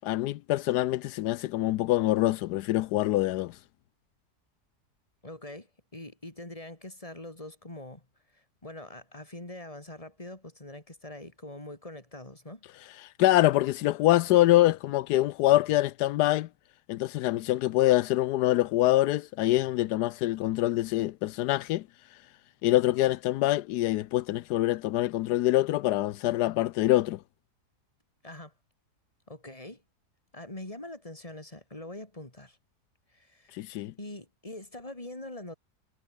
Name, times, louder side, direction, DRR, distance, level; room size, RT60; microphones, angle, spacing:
voice 1, 0.0-3.6 13.2-16.5 16.9-21.8 22.6-27.2 33.5-33.9, left 15 dB, 85° left, 1.2 m, -25 dB
voice 2, 5.2-5.7 5.9-8.1 8.3-12.6 28.2-28.5 29.3-29.8 30.3-32.6 33.1-33.6 34.0-35.5, left 1 dB, 20° left, 4.0 m, -43 dB
omnidirectional pair, 1.7 m